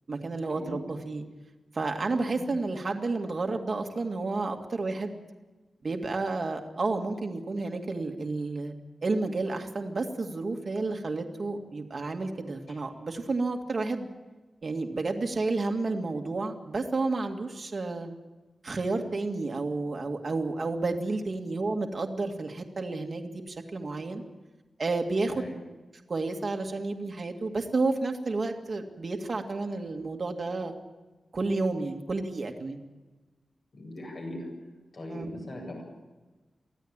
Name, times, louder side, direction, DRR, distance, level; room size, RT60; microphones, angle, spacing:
voice 1, 0.1-1.3 1.7-5.2 5.8-8.7 9.0-14.1 14.6-18.1 18.6-24.2 24.8-25.4 26.1-30.7 31.3-32.8 35.1-35.3, right 3 dB, 40° right, 3 dB, 2.1 m, -31 dB
voice 2, 33.7-34.5 34.9-35.8, left 1 dB, 45° left, 1 dB, 7.9 m, -40 dB
23.5 x 16.5 x 8.9 m, 1.2 s
wide cardioid pair, 160°, 0 cm